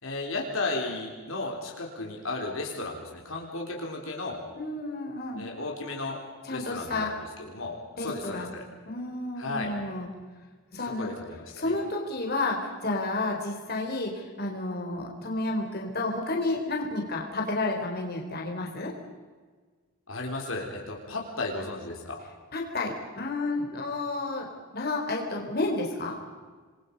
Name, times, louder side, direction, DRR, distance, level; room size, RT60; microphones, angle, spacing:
voice 1, 0.0-4.4 5.4-6.2 6.5-7.1 7.4-8.7 9.4-9.7 10.9-11.7 20.1-22.3, left 2 dB, 65° left, 0 dB, 3.9 m, -34 dB
voice 2, 4.5-5.4 6.4-7.1 8.0-8.5 8.9-10.1 10.7-11.1 11.5-14.1 14.4-18.9 22.5-24.5 24.7-26.2, left 2 dB, 45° left, 0 dB, 4.1 m, -31 dB
28.0 x 22.0 x 5.4 m, 1.4 s
head